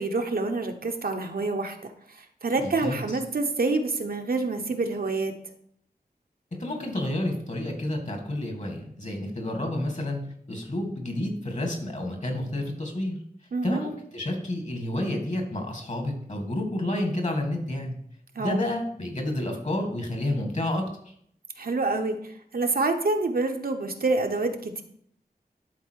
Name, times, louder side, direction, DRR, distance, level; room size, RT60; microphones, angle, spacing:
voice 1, 0.0-1.8 2.4-5.4 13.5-13.9 18.3-18.6 21.6-22.2 22.5-24.8, right 3 dB, 70° right, 4 dB, 0.9 m, -27 dB
voice 2, 2.6-3.0 6.5-10.2 10.5-13.2 13.6-17.9 18.4-21.1, left 1 dB, 50° left, 3 dB, 2.1 m, -30 dB
11.5 x 4.2 x 4.6 m, 0.67 s
wide cardioid pair, 85°, 16 cm